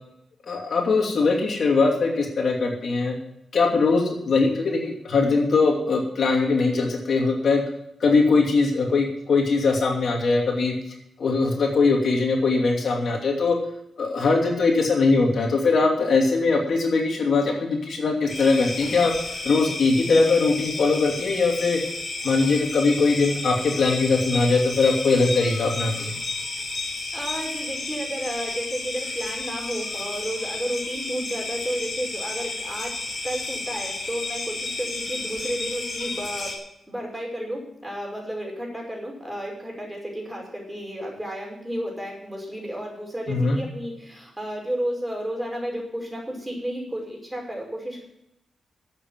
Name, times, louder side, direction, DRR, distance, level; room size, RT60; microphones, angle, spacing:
voice 1, 0.5-3.2 3.5-7.6 8.0-10.7 11.2-13.6 14.0-19.1 19.4-21.8 22.2-26.1 43.3-43.6, left 3 dB, 60° left, 1 dB, 2.7 m, -21 dB
sound 1, 18.3-36.6, left 3 dB, 40° left, 4.1 m, -32 dB
voice 2, 27.1-32.9 33.2-48.0, equal, 10° right, -1 dB, 5.6 m, -32 dB
12.5 x 8.1 x 7.5 m, 0.82 s
cardioid pair, 105°, 0 cm